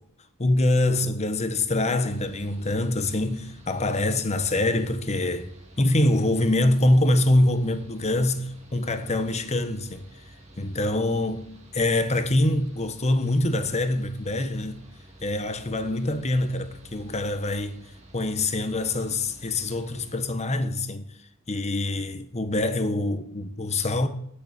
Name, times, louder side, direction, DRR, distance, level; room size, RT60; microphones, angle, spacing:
voice 1, 0.4-5.5 5.8-10.0 10.6-14.8 15.2-17.8 18.1-21.0 21.5-24.1, left 1 dB, 30° left, 1.2 m, -24 dB
Mechanical fan, 2.0-20.2, right 1 dB, 30° right, 2.3 m, -50 dB
11.5 x 6.7 x 8.9 m
head